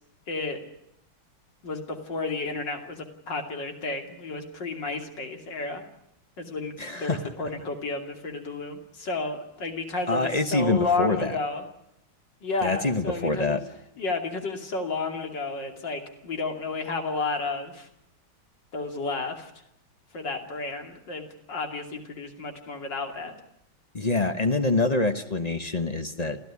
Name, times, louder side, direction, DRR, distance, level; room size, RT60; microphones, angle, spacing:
voice 1, 0.3-0.6 1.6-5.8 6.4-11.6 12.4-13.6 14.0-17.9 18.7-19.5 20.1-23.3, left 3 dB, 55° left, 4 dB, 3.4 m, -32 dB
voice 2, 6.8-7.2 10.1-11.4 12.6-13.6 23.9-26.4, left 3 dB, 30° left, 9 dB, 0.8 m, -25 dB
28.0 x 15.5 x 9.6 m, 0.78 s
omnidirectional pair, 2.3 m